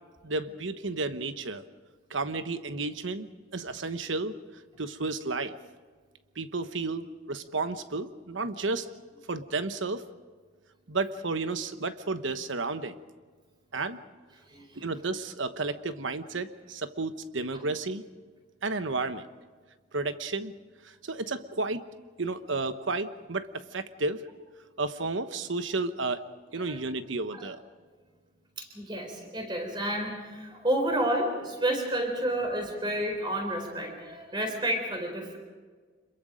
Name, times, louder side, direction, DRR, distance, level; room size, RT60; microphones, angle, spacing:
voice 1, 0.2-1.6 2.1-3.3 3.5-4.4 4.8-5.6 6.4-8.9 9.3-10.1 10.9-13.0 13.7-14.0 14.8-18.0 18.6-19.2 19.9-20.5 21.0-21.9 22.2-24.2 24.8-26.2 26.5-27.6, right 3 dB, 80° right, 10 dB, 1.1 m, -32 dB
voice 2, 14.5-14.9 26.6-26.8 27.3-27.5 28.6-35.4, right 1 dB, 25° right, 4 dB, 4.1 m, -30 dB
26.5 x 22.0 x 5.1 m, 1.5 s
head